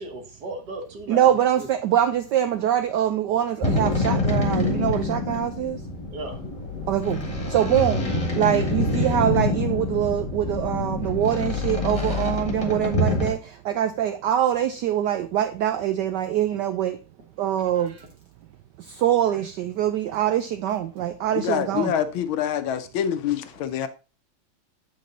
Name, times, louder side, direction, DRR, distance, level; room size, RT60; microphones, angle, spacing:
voice 1, 0.0-1.7 6.1-6.4 11.4-11.5 17.7-18.1 19.3-19.4, right 2 dB, 55° right, 1.6 m, -37 dB
voice 2, 1.1-5.8 6.9-8.0 8.3-17.0 17.4-17.9 18.8-21.9, right 11 dB, 85° right, 0.9 m, -24 dB
sound 1, 3.6-13.3, left 2 dB, 20° left, 1.3 m, -26 dB
voice 3, 21.4-23.9, left 9 dB, 75° left, 1.4 m, -26 dB
7.5 x 5.4 x 3.8 m
omnidirectional pair, 2.4 m